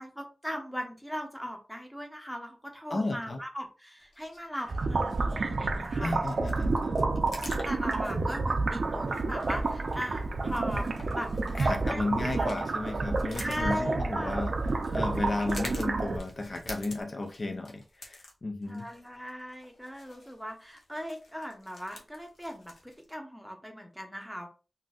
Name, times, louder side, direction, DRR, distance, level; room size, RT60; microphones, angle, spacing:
voice 1, 0.0-6.3 6.7-7.0 7.6-10.9 11.1-11.3 11.6-12.1 12.4-12.5 13.4-14.5 18.7-24.5, equal, ahead, 0.8 m, -38 dB
voice 2, 2.9-3.4 6.0-7.0 11.6-14.5 14.9-18.9, left 2 dB, 50° left, 0.5 m, -33 dB
sound 1, 4.0-23.1, left 2 dB, 90° left, 0.7 m, -50 dB
sound 2, 4.7-16.2, right 3 dB, 70° right, 0.4 m, -30 dB
Writing, 7.7-17.0, equal, 25° left, 1.0 m, -50 dB
3.8 x 2.6 x 2.4 m
wide cardioid pair, 75°, 0 cm